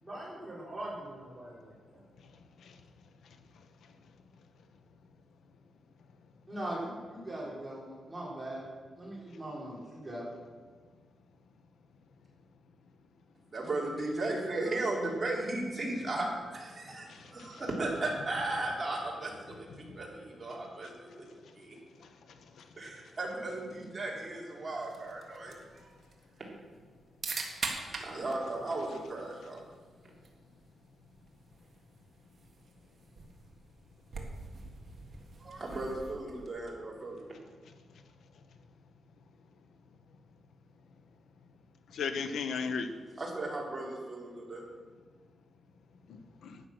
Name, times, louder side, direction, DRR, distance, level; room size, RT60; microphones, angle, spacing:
voice 1, 0.0-2.0 6.5-8.7 9.0-10.3, right 1 dB, 10° right, -6 dB, 4.0 m, -41 dB
voice 2, 13.5-21.3 21.6-21.8 22.8-25.9 26.4-26.5 27.7-29.6 35.4-37.2 43.2-44.6, right 2 dB, 25° right, -3 dB, 3.5 m, -36 dB
voice 3, 17.1-17.6 19.8-20.0 22.6-22.7 41.9-42.9 46.1-46.6, left 5 dB, 85° left, 8 dB, 1.0 m, -36 dB
sound 1, 24.8-36.7, right 4 dB, 45° right, 1.8 m, -45 dB
12.5 x 9.3 x 6.1 m, 1.5 s
wide cardioid pair, 140°, 0 cm